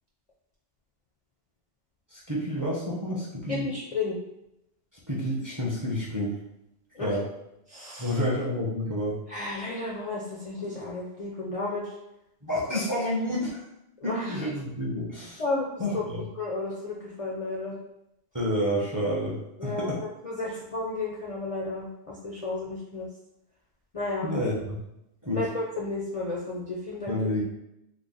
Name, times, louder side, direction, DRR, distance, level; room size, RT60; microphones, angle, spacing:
voice 1, 2.1-3.7 5.1-6.4 7.0-7.2 8.0-9.2 12.4-13.6 14.0-15.4 15.8-16.2 18.3-20.0 24.2-24.8 25.2-25.4 27.1-27.4, equal, 20° right, -5 dB, 0.6 m, -29 dB
voice 2, 3.5-4.2 6.9-7.1 7.7-8.2 9.3-12.0 14.0-14.4 15.4-15.7 15.9-17.8 19.6-19.9 20.2-23.1 23.9-24.3 25.3-27.2, left 2 dB, 45° left, -4 dB, 0.5 m, -32 dB
3.2 x 2.1 x 3.8 m, 0.84 s
omnidirectional pair, 1.2 m